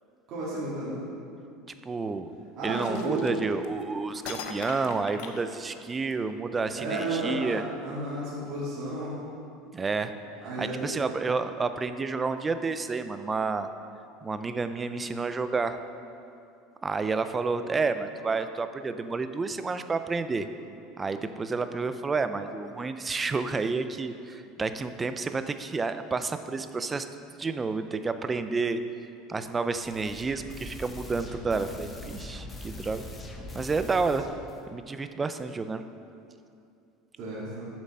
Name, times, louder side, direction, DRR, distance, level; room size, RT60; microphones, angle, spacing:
voice 1, 0.3-0.9 2.6-3.3 6.7-9.2 10.4-10.9 37.2-37.7, right 2 dB, 45° right, -9 dB, 2.3 m, -32 dB
voice 2, 1.8-2.3 2.6-7.6 9.7-10.1 10.6-13.7 14.2-15.8 16.8-20.5 21.0-27.1 27.4-28.8 29.3-33.1 33.5-34.2 34.7-35.8, right 4 dB, 15° right, 10 dB, 0.4 m, -30 dB
sound 1, 2.7-3.8 4.2-6.1, left 6 dB, 70° left, 0.7 m, -41 dB
sound 2, 29.8-34.6, left 1 dB, 15° left, 0.8 m, -42 dB
7.4 x 7.3 x 5.5 m, 2.6 s
cardioid pair, 160°, 0 cm